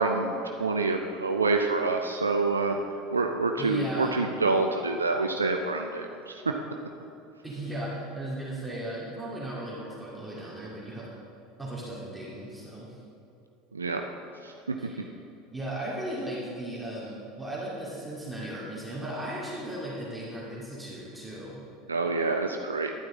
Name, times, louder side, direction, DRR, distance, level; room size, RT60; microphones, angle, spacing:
voice 1, 0.0-2.8 3.1-6.5 13.7-14.0 14.4-14.8 21.9-22.9, right 3 dB, 80° right, 4 dB, 0.4 m, -27 dB
voice 2, 3.6-4.1 7.4-11.1 11.6-13.0 14.8-15.1 15.5-21.6, right 1 dB, 5° right, -7 dB, 2.2 m, -36 dB
11.0 x 9.0 x 3.7 m, 2.7 s
figure-of-eight pair, 70°, 0 cm